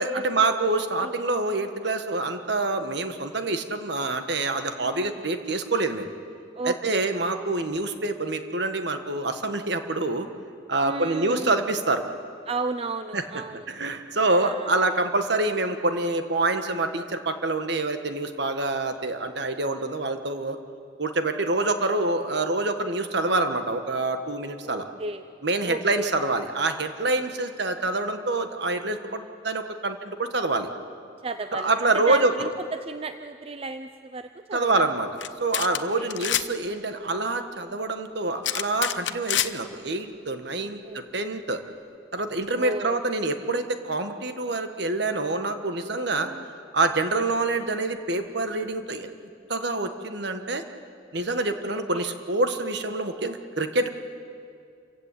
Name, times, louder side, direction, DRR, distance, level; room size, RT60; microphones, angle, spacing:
voice 1, 0.0-6.1 6.6-10.3 10.7-12.0 13.1-13.2 13.7-20.6 21.0-24.9 25.4-30.7 31.5-32.3 34.5-35.1 35.4-41.6 42.1-49.1 49.5-50.6 51.1-53.9, right 2 dB, 60° right, 7 dB, 1.5 m, -26 dB
voice 2, 4.8-5.2 6.6-7.0 10.8-11.5 12.5-13.6 14.4-14.7 24.6-25.2 25.6-26.1 31.2-32.5 32.8-34.8 35.7-36.1 40.6-41.0 42.5-43.0 46.1-46.5 51.9-52.1, right 3 dB, 30° right, 10 dB, 0.5 m, -34 dB
sound 1, 35.2-35.3 35.5-35.8 36.1-36.5 38.4-39.5, left 12 dB, 65° left, 0.8 m, -26 dB
28.0 x 16.0 x 8.4 m, 2.4 s
head